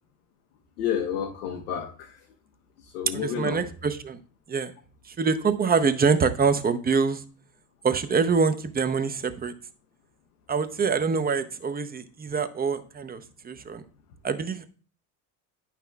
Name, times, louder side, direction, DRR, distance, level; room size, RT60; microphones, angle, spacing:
voice 1, 0.8-2.1 2.9-3.7, left 9 dB, 80° left, 4 dB, 0.9 m, -30 dB
voice 2, 3.1-4.2 4.5-4.7 5.1-7.2 7.8-9.5 10.5-13.8 14.2-14.7, right 5 dB, 20° right, 10 dB, 0.6 m, -25 dB
9.0 x 5.9 x 2.3 m, 0.40 s
hypercardioid pair, 65°, 44 cm